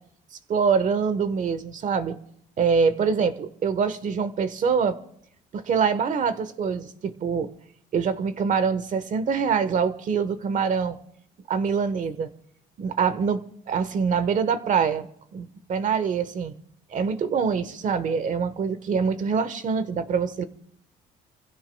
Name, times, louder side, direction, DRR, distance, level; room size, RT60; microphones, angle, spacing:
voice 1, 0.5-2.2 2.6-5.0 5.5-7.5 7.9-11.0 11.5-12.3 12.8-15.1 15.3-16.6 16.9-20.4, right 6 dB, 50° right, 1.3 m, -24 dB
29.0 x 16.0 x 2.3 m
cardioid pair, 110°, 17 cm